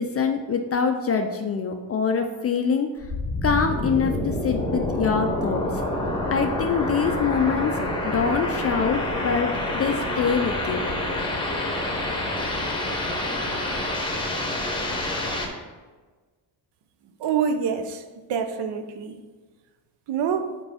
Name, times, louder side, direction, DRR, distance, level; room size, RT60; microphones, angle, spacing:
voice 1, 0.0-2.9 3.4-5.8 6.3-10.8, left 6 dB, 35° left, 5 dB, 0.4 m, -25 dB
sound 1, 3.0-15.5, left 1 dB, 10° left, 0.8 m, -27 dB
voice 2, 17.2-18.0 18.3-19.2 20.1-20.5, right 7 dB, 65° right, 9 dB, 0.7 m, -26 dB
5.6 x 4.6 x 4.1 m, 1.3 s
cardioid pair, 135°, 44 cm